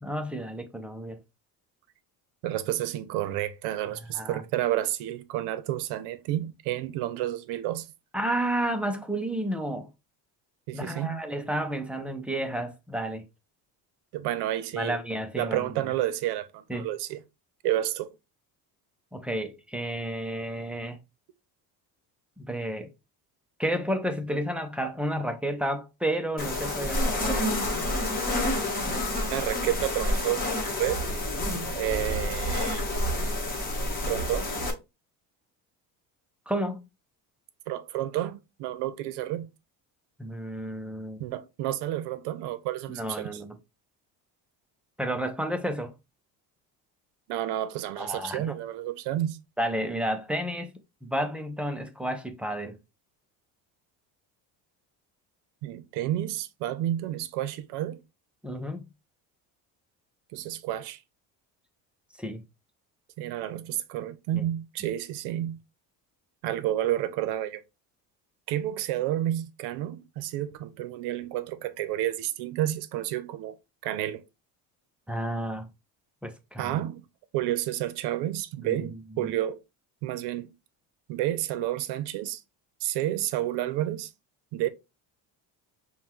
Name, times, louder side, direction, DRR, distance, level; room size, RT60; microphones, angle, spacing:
voice 1, 0.0-1.2 4.1-4.4 8.1-9.9 10.7-13.2 14.8-15.9 16.7-16.9 19.1-21.0 22.4-22.9 23.6-27.5 36.5-36.8 40.2-41.2 42.9-43.6 45.0-45.9 48.0-48.5 49.6-50.7 51.0-52.8 58.4-58.9 62.2-62.4 64.3-64.4 75.1-75.7 76.2-76.8 78.6-79.3, right 1 dB, 5° right, 0.3 m, -31 dB
voice 2, 2.4-7.9 10.7-11.2 14.1-15.0 15.4-17.2 17.6-18.1 29.3-30.4 30.8-31.0 31.7-32.8 34.1-34.5 37.7-39.5 41.2-43.4 47.3-49.4 55.6-58.0 60.3-61.0 63.2-65.6 66.4-67.6 68.5-73.6 73.8-74.2 76.6-77.0 77.3-79.6 80.0-80.5 81.1-82.4 82.8-84.1 84.5-84.7, right 13 dB, 85° right, 0.6 m, -30 dB
sound 1, 26.4-34.7, left 1 dB, 25° left, 1.1 m, -29 dB
5.4 x 2.2 x 2.9 m
cardioid pair, 145°, 39 cm